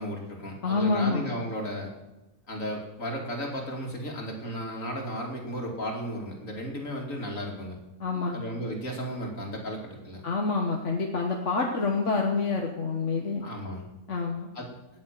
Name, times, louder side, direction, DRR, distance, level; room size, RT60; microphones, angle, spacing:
voice 1, 0.0-1.9 2.5-7.8 8.3-10.3 13.4-13.9 14.5-14.7, equal, 80° left, 1 dB, 3.2 m, -34 dB
voice 2, 0.6-1.3 8.0-8.4 10.2-13.4 14.1-14.5, left 4 dB, 65° left, 2 dB, 1.7 m, -27 dB
18.0 x 7.3 x 7.5 m, 1.0 s
omnidirectional pair, 1.3 m